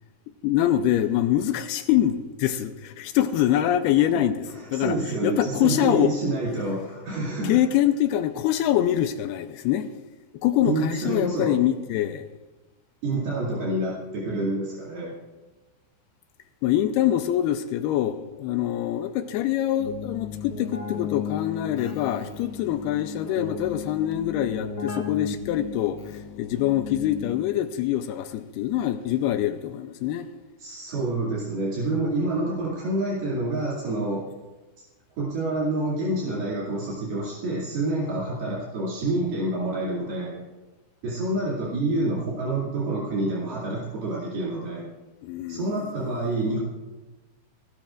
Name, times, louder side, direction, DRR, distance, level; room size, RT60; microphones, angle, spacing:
voice 1, 0.4-4.4 4.7-6.1 7.4-9.9 10.4-12.3 16.6-26.0 26.4-30.3 45.2-45.7 46.0-46.1, left 12 dB, 85° left, 2.6 m, -24 dB
voice 2, 4.5-7.6 10.6-11.6 13.0-15.2 30.6-34.3 35.2-40.4 41.0-44.9 45.5-46.6, right 2 dB, 70° right, 4.2 m, -28 dB
Keyboard (musical), 19.8-27.7, left 7 dB, 60° left, 1.4 m, -35 dB
27.0 x 13.0 x 2.5 m
omnidirectional pair, 4.7 m